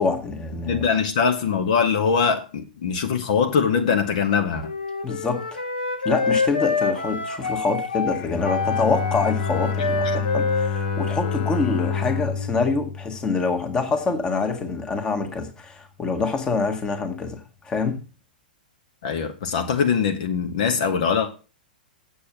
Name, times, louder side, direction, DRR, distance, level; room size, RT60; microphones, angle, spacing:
voice 1, 0.0-0.8 5.0-5.6 6.0-18.0, left 4 dB, 15° left, 1.7 m, -26 dB
voice 2, 0.6-4.7 19.0-21.3, left 6 dB, 50° left, 1.4 m, -22 dB
Wind instrument woodwind instrument, 4.6-12.1, left 4 dB, 75° left, 2.2 m, -27 dB
Bowed string instrument, 8.1-14.0, left 6 dB, 35° left, 1.0 m, -28 dB
8.4 x 7.4 x 5.9 m
figure-of-eight pair, 105°, 5 cm